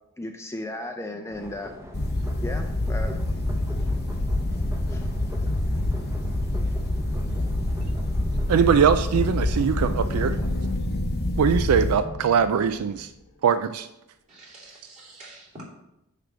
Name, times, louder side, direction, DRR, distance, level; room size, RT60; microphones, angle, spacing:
voice 1, 0.2-1.7 2.4-3.2 4.9-5.1, left 1 dB, 10° left, 4 dB, 0.5 m, -35 dB
sound 1, 1.3-10.7, equal, 10° right, 0.8 m, -42 dB
sound 2, 1.9-11.9, left 1 dB, 50° left, 0.9 m, -26 dB
voice 2, 8.5-10.4 11.4-13.1 13.4-13.9, right 7 dB, 80° right, 12 dB, 0.4 m, -21 dB
sound 3, 8.9-13.3, left 1 dB, 75° left, 1.1 m, -36 dB
voice 3, 14.3-15.6, right 1 dB, 35° right, -6 dB, 2.9 m, -46 dB
9.6 x 3.4 x 6.1 m, 0.87 s
head